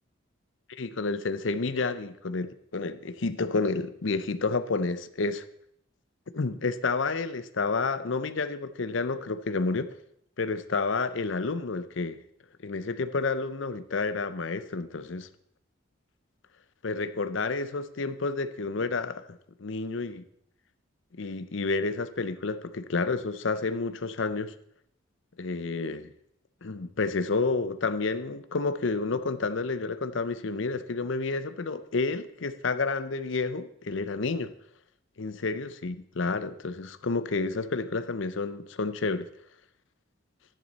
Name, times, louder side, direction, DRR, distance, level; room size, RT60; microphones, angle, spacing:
voice 1, 0.7-5.5 6.3-10.0 10.4-12.2 12.6-15.3 16.8-19.2 19.6-20.2 21.2-24.5 25.4-26.1 26.6-34.5 35.2-39.3, left 3 dB, 65° left, 0.7 m, -30 dB
12.0 x 10.5 x 4.1 m
head